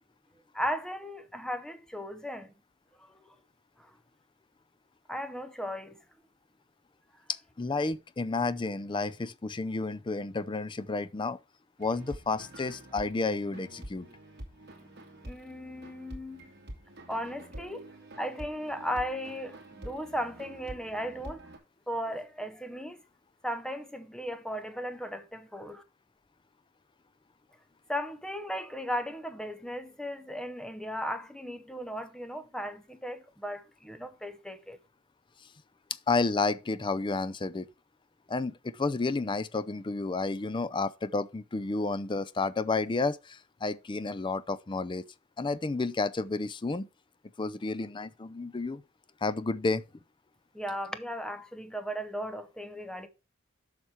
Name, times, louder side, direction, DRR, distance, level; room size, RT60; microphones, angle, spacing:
voice 1, 0.5-2.5 3.0-3.3 3.8-3.9 5.1-6.0 15.2-16.4 17.1-17.9 18.2-21.4 21.9-23.0 23.4-25.8 27.9-34.8 50.5-53.1, equal, 5° left, 0.8 m, -36 dB
voice 2, 7.3-11.4 11.8-14.1 36.1-37.7 38.3-45.0 45.4-46.9 47.4-48.8 49.2-49.8, left 3 dB, 25° left, 0.4 m, -31 dB
sound 1, 11.8-21.6, right 1 dB, 50° right, 2.4 m, -47 dB
7.2 x 5.9 x 4.8 m
head